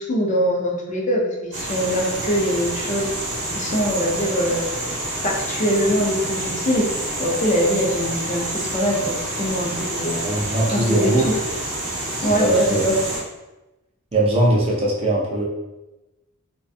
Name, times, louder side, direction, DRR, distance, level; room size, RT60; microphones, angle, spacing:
voice 1, 0.0-3.1 3.5-4.6 5.2-6.9 7.2-10.2 10.7-11.4 12.2-13.0, equal, 35° left, -1 dB, 0.5 m, -22 dB
sound 1, 1.5-13.2, right 1 dB, 60° right, 0.8 m, -28 dB
voice 2, 10.1-11.3 12.3-12.8 14.1-15.4, right 1 dB, 25° right, -3 dB, 0.4 m, -21 dB
2.4 x 2.2 x 2.6 m, 1.0 s
head